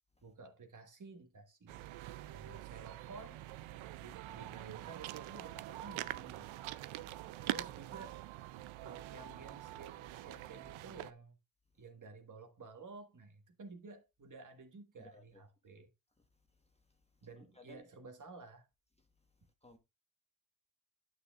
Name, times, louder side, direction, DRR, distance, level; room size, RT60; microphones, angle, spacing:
voice 1, 0.2-1.8 2.3-3.4 4.0-6.6 7.4-8.2 8.8-11.4 11.8-15.9 17.2-18.7, right 3 dB, 40° right, 1.6 m, -53 dB
sound 1, 1.7-11.1, right 15 dB, 90° right, 0.6 m, -45 dB
voice 2, 6.9-7.5 8.5-8.8 11.7-11.9 15.0-15.4 16.2-17.9 19.0-19.8, left 1 dB, 15° left, 1.2 m, -64 dB
11.0 x 6.4 x 2.4 m
cardioid pair, 100°, 46 cm